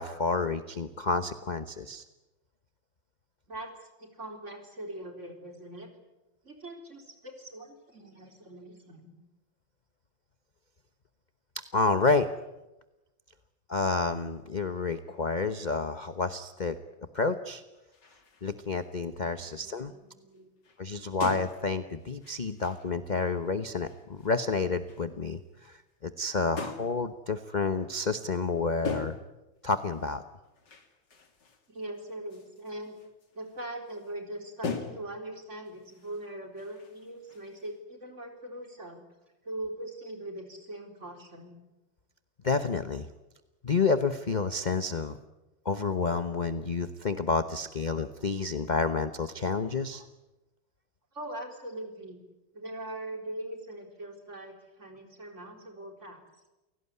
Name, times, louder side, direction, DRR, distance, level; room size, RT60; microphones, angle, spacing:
voice 1, 0.0-2.0 11.7-12.3 13.7-16.8 17.1-17.6 18.4-19.9 20.8-29.2 29.6-30.2 42.4-43.1 43.6-45.2 45.6-50.0, left 4 dB, 30° left, 10 dB, 0.8 m, -29 dB
voice 2, 3.5-5.9 6.4-9.2 19.6-20.5 31.7-33.0 33.3-39.0 39.4-41.6 51.1-52.2 52.5-56.3, right 1 dB, 35° right, 4 dB, 4.4 m, -41 dB
sound 1, 17.9-18.9 19.2-19.8 20.4-20.5 20.6-23.5 23.8-24.4 24.9-25.1 26.6-27.0 28.8-29.4 29.8-34.1 34.6-35.3 35.7-37.8, left 5 dB, 60° left, 3.1 m, -42 dB
28.5 x 18.0 x 9.8 m, 1.0 s
omnidirectional pair, 2.2 m